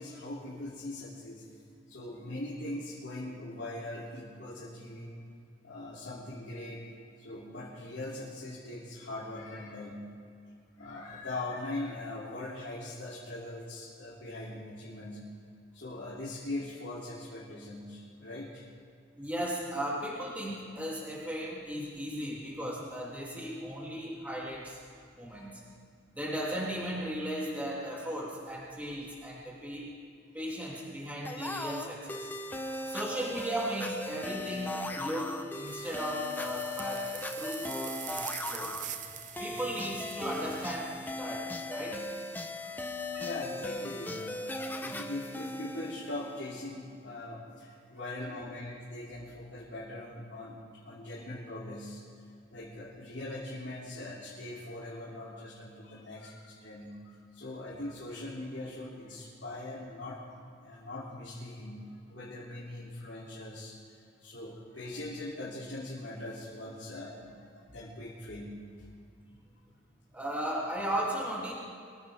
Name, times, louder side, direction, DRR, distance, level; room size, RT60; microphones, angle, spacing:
voice 1, 0.0-1.4 1.9-5.2 5.6-6.8 7.2-10.1 10.8-15.2 15.7-18.7 25.3-25.5 32.5-33.0 42.4-42.9 43.2-44.5 44.8-52.0 52.5-63.7 64.2-68.5, left 1 dB, 75° left, -7 dB, 3.0 m, -41 dB
voice 2, 19.2-24.8 25.2-25.5 26.2-29.9 30.3-32.3 32.9-38.7 39.4-42.0 43.1-43.3 70.1-71.5, right 1 dB, 10° right, -6 dB, 2.9 m, -36 dB
sound 1, 31.2-46.7, left 2 dB, 10° left, 0.9 m, -38 dB
sound 2, 35.7-40.7, right 10 dB, 45° right, 0.8 m, -43 dB
24.0 x 16.0 x 3.6 m, 2.4 s
head